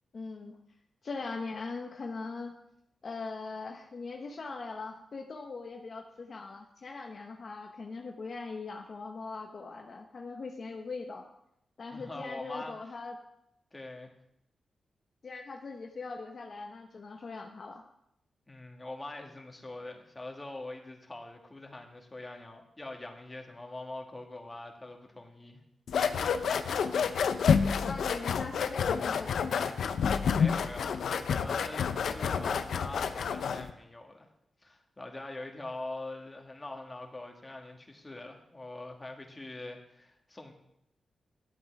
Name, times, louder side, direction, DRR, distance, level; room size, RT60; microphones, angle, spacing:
voice 1, 0.1-0.6 1.0-2.5 3.0-11.3 11.8-13.2 15.2-17.8 27.8-29.5, left 4 dB, 55° left, 3 dB, 0.9 m, -40 dB
voice 2, 11.9-12.7 13.7-14.1 18.5-25.6 29.9-34.3 34.6-40.5, left 2 dB, 25° left, 2 dB, 2.1 m, -43 dB
sound 1, 25.9-33.7, left 6 dB, 80° left, 0.6 m, -29 dB
11.0 x 7.9 x 4.8 m, 0.79 s
cardioid pair, 60°, 0 cm